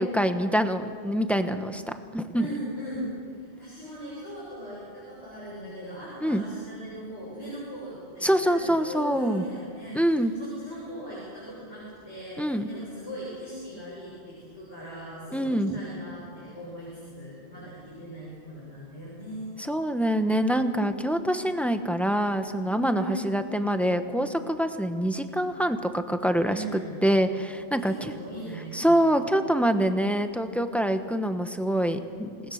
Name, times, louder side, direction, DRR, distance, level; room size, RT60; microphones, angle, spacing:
voice 1, 0.0-1.8 2.1-2.5 6.2-6.4 8.2-9.4 9.9-10.3 12.4-12.7 15.3-15.7 19.6-28.1 28.7-32.4, equal, ahead, 7 dB, 1.0 m, -25 dB
voice 2, 2.3-19.5 22.9-23.2 26.4-27.0 27.8-29.0, equal, 80° left, -7 dB, 7.3 m, -39 dB
27.0 x 19.5 x 6.5 m, 2.2 s
omnidirectional pair, 1.1 m